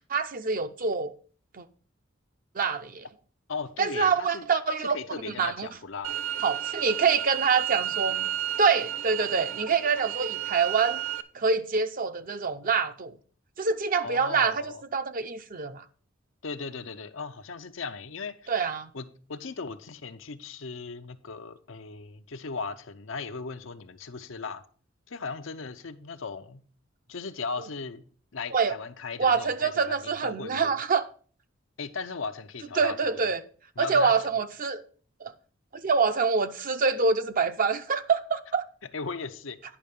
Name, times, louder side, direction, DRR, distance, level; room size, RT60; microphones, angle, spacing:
voice 1, 0.1-1.1 1.5-1.6 2.5-3.1 3.8-5.0 5.4-5.7 6.4-8.3 8.6-11.0 11.3-13.2 13.6-15.8 18.5-18.9 28.5-28.8 29.2-31.0 32.8-33.4 33.8-34.8 35.2-35.3 35.7-38.6, right 5 dB, 45° right, 0.7 m, -26 dB
voice 2, 3.5-4.5 4.8-6.2 14.0-14.8 16.4-18.5 18.9-24.6 25.1-26.6 27.1-28.0 28.3-30.7 31.8-33.2 33.8-34.3 38.9-39.6, left 4 dB, 85° left, 0.8 m, -37 dB
sound 1, 6.0-11.2, right 12 dB, 85° right, 0.6 m, -32 dB
9.9 x 5.7 x 5.3 m
head